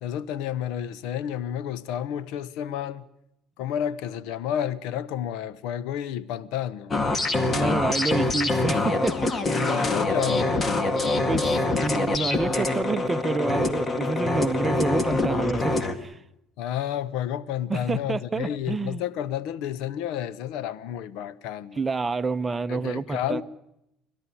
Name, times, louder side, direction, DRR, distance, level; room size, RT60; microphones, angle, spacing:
voice 1, 0.0-3.0 3.6-6.9 9.7-10.7 16.6-21.8 22.7-23.4, left 10 dB, 75° left, 1.0 m, -31 dB
sound 1, 6.9-16.0, left 2 dB, 30° left, 2.0 m, -25 dB
voice 2, 7.5-9.8 11.3-16.2 17.7-19.0 21.8-23.4, right 3 dB, 20° right, 0.8 m, -28 dB
29.5 x 12.5 x 9.9 m
supercardioid pair, 95°, 0 cm